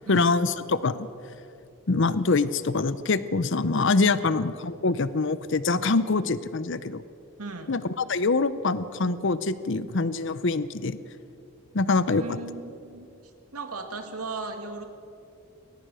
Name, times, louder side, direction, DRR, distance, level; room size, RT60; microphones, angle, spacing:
voice 1, 0.1-1.1 1.9-7.0 7.7-11.0 11.7-12.2, left 3 dB, 55° left, 15 dB, 0.7 m, -24 dB
voice 2, 7.4-7.8 12.1-13.1 13.5-14.8, right 3 dB, 90° right, 5 dB, 2.2 m, -37 dB
21.5 x 19.5 x 6.3 m, 2.5 s
head